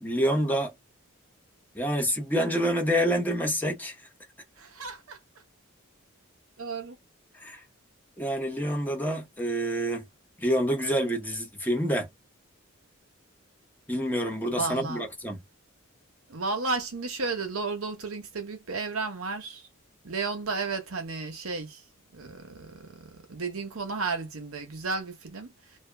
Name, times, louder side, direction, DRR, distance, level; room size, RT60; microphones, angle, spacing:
voice 1, 0.0-0.7 1.7-3.9 7.4-7.6 8.2-10.0 10.4-12.1 13.9-15.4, equal, 10° left, 1.0 m, -27 dB
voice 2, 4.6-5.2 6.6-7.0 14.6-15.0 16.3-19.7 20.0-21.8 22.1-25.5, right 4 dB, 80° right, 1.1 m, -33 dB
2.8 x 2.4 x 2.3 m
head